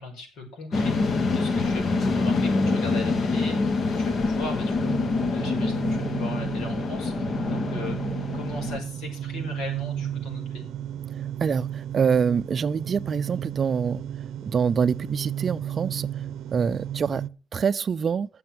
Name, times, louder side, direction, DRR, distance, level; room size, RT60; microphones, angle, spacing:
voice 1, 0.0-5.0 5.3-8.0 8.3-10.7, left 2 dB, 80° left, 6.0 m, -38 dB
sound 1, 0.7-8.8, left 3 dB, 40° left, 1.1 m, -25 dB
sound 2, 4.8-17.3, right 10 dB, 80° right, 0.6 m, -33 dB
voice 2, 11.4-14.0 14.5-16.1 16.5-17.2 17.5-18.3, right 6 dB, 35° right, 0.5 m, -25 dB
11.5 x 7.8 x 7.5 m
cardioid pair, 145°, 0 cm